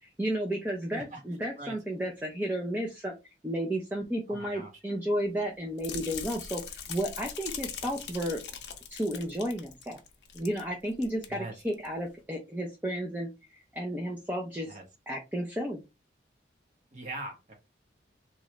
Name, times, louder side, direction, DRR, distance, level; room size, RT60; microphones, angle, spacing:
voice 1, 0.0-3.1 3.4-8.4 8.9-10.0 10.3-13.3 13.7-14.8 15.1-15.8, equal, 10° right, 0 dB, 0.5 m, -32 dB
voice 2, 0.9-1.2 1.6-1.8 4.3-4.7 11.3-11.5 14.7-14.8 16.9-17.5, right 2 dB, 40° right, 2 dB, 1.0 m, -41 dB
sound 1, 5.8-10.7 10.9-11.3 11.7-11.9, left 7 dB, 65° left, 0.6 m, -41 dB
2.9 x 2.5 x 3.1 m, 0.24 s
head